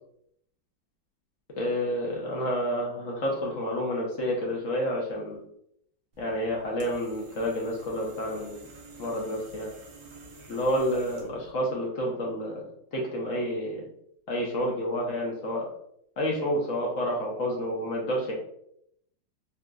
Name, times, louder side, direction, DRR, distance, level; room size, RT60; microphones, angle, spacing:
voice 1, 1.6-5.4 6.2-8.6 9.0-9.7 10.5-12.6 12.9-13.8 14.3-15.7 16.2-18.3, equal, 65° left, -2 dB, 0.8 m, -29 dB
sound 1, 6.1-11.5, right 2 dB, 65° right, 1.1 m, -50 dB
4.0 x 2.4 x 2.2 m, 0.73 s
omnidirectional pair, 2.1 m